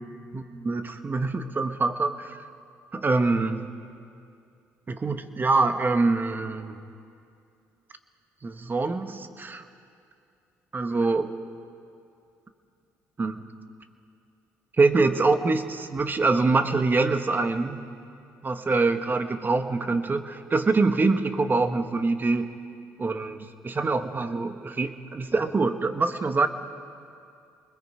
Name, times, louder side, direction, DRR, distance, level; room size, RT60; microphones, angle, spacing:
voice 1, 0.3-2.4 2.9-3.6 4.9-6.8 8.4-9.6 10.7-11.3 13.2-13.4 14.8-17.8 18.4-22.5 23.0-26.5, right 3 dB, 30° right, 8 dB, 1.3 m, -25 dB
25.0 x 21.0 x 5.0 m, 2.5 s
supercardioid pair, 65°, 6 cm